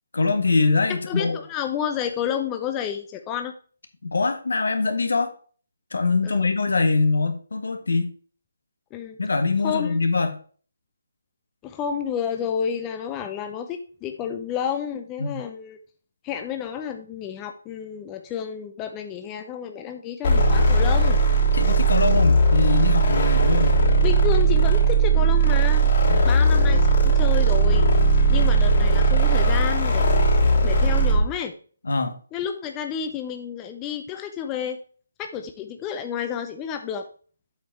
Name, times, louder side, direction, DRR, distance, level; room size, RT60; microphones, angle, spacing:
voice 1, 0.1-1.4 4.0-5.3 5.9-8.1 9.2-10.4 15.2-15.4 21.5-23.8 26.0-26.3 31.8-32.2, left 3 dB, 75° left, 1.7 m, -23 dB
voice 2, 0.9-3.5 6.2-6.5 8.9-9.2 9.6-10.1 11.6-15.8 16.2-21.2 24.0-25.9 26.2-27.9 28.3-30.1 30.6-31.5 32.3-34.8 35.2-37.0, left 8 dB, 15° left, 0.7 m, -30 dB
sound 1, 20.2-31.3, right 3 dB, 45° left, 3.1 m, -18 dB
8.0 x 5.4 x 4.2 m
figure-of-eight pair, 155°, 0 cm